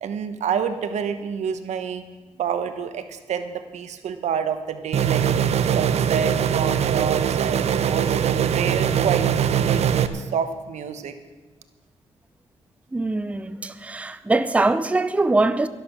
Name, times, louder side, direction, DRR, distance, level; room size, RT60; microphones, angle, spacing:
voice 1, 0.0-2.0 2.4-5.3 5.7-11.1, right 7 dB, 85° right, 1.1 m, -28 dB
sound 1, 4.9-10.1, right 8 dB, 70° right, 0.7 m, -21 dB
voice 2, 12.9-15.7, right 2 dB, 10° right, 0.5 m, -22 dB
12.0 x 12.0 x 6.1 m
cardioid pair, 110°, 12 cm